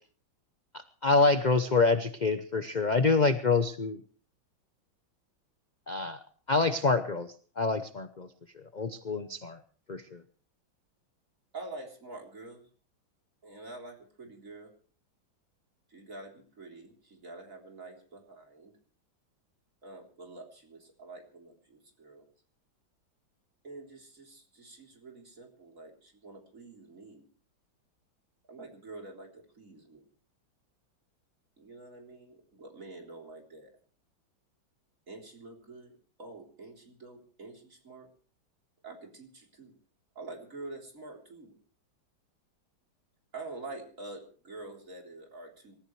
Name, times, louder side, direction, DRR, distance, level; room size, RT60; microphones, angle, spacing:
voice 1, 1.0-4.0 5.9-6.2 6.5-7.3 7.6-8.3 8.7-9.6 9.9-10.2, left 3 dB, 50° left, 9 dB, 0.5 m, -26 dB
voice 2, 11.5-12.6 13.4-14.7 15.9-18.7 19.8-22.3 23.6-27.2 28.5-30.0 31.6-33.7 35.1-35.9 36.2-38.1 38.8-39.7 40.2-41.6 43.3-45.7, right 2 dB, 40° right, 1 dB, 4.1 m, -47 dB
26.0 x 14.5 x 3.3 m, 0.42 s
omnidirectional pair, 2.2 m